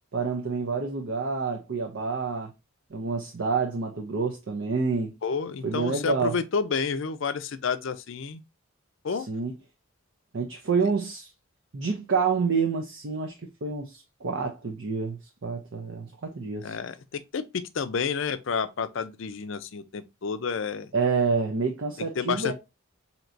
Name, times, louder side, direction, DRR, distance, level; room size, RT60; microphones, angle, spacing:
voice 1, 0.1-2.5 2.9-5.1 5.6-6.4 9.3-9.5 10.3-11.3 11.7-16.8 20.9-22.5, right 4 dB, 55° right, 0.6 m, -28 dB
voice 2, 5.2-8.4 9.0-9.3 16.6-20.9 22.2-22.5, left 5 dB, 55° left, 0.4 m, -30 dB
4.5 x 2.8 x 2.5 m
head